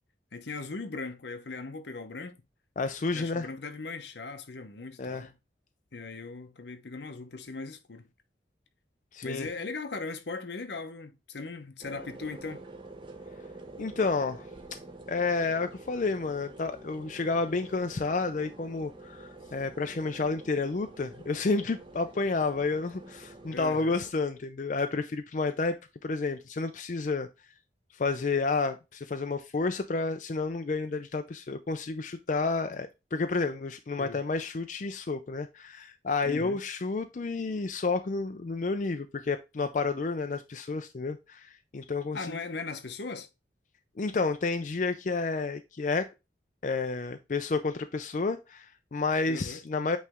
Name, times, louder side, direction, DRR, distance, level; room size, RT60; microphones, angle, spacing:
voice 1, 0.3-2.4 3.1-5.4 5.9-8.1 9.2-12.6 23.5-24.0 34.0-34.2 36.2-36.6 42.1-43.3 49.3-49.6, left 3 dB, 75° left, 0.8 m, -39 dB
voice 2, 2.8-3.5 5.0-5.3 9.1-9.5 13.8-14.5 15.1-27.3 27.9-42.3 44.0-46.1 46.6-50.0, left 3 dB, 45° left, 0.4 m, -30 dB
sound 1, 11.8-24.1, right 2 dB, 30° right, 0.9 m, -48 dB
8.3 x 3.2 x 3.5 m
head